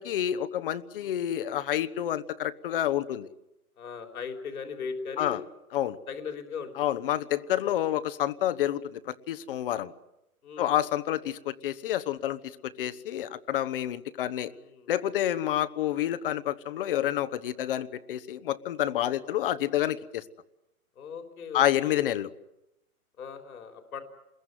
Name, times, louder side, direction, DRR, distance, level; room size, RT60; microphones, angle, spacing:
voice 1, 0.0-3.3 5.2-5.4 5.7-6.0 6.8-9.9 10.6-14.5 14.9-20.2 21.5-22.3, left 12 dB, 40° left, 13 dB, 1.1 m, -29 dB
voice 2, 3.8-5.4 6.1-6.9 7.6-7.7 10.4-10.8 14.4-14.9 19.2-19.4 21.0-22.2 23.2-24.0, left 6 dB, 75° left, 5 dB, 3.9 m, -39 dB
28.5 x 22.0 x 9.4 m, 0.93 s
hypercardioid pair, 160°, 44 cm